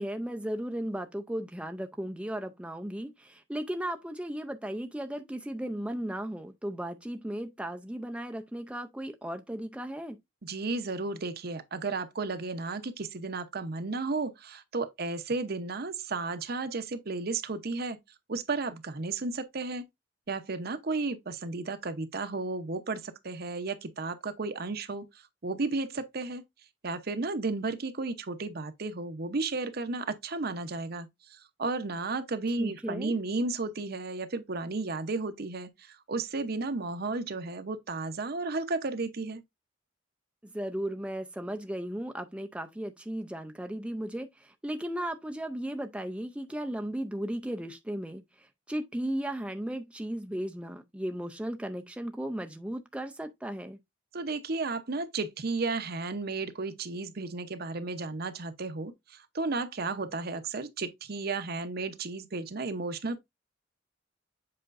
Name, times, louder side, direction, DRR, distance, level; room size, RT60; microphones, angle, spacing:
voice 1, 0.0-10.2 32.6-33.2 40.4-53.8, right 1 dB, 5° right, 0.5 m, -36 dB
voice 2, 10.4-18.0 18.3-19.8 20.3-25.1 25.4-26.4 26.8-39.4 54.1-63.2, right 3 dB, 55° right, 0.8 m, -33 dB
7.7 x 5.0 x 2.5 m
head